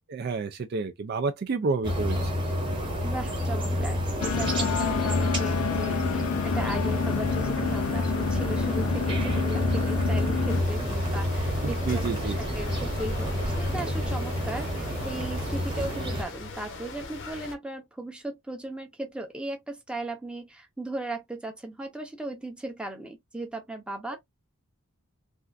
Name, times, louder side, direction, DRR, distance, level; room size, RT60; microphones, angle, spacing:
voice 1, 0.1-2.2 11.6-12.4, right 4 dB, 45° right, 0.3 m, -29 dB
sound 1, 1.8-16.2, equal, 20° right, 1.0 m, -29 dB
voice 2, 3.0-24.2, right 1 dB, 5° right, 0.6 m, -37 dB
sound 2, 4.2-10.6, left 7 dB, 70° left, 0.3 m, -29 dB
sound 3, 10.5-17.6, left 2 dB, 55° left, 0.8 m, -39 dB
3.4 x 2.4 x 2.5 m
head